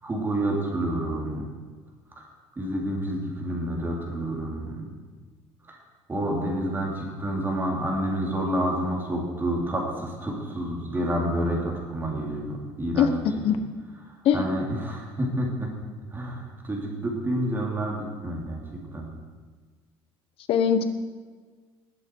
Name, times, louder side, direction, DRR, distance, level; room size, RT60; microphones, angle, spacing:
voice 1, 0.0-1.5 2.6-4.9 5.7-5.8 6.1-13.1 14.3-15.7 16.1-18.6 18.9-19.1, right 1 dB, 20° right, -1 dB, 3.4 m, -29 dB
voice 2, 20.5-20.8, left 8 dB, 65° left, 9 dB, 1.2 m, -20 dB
19.5 x 7.8 x 4.8 m, 1.4 s
cardioid pair, 120°, 11 cm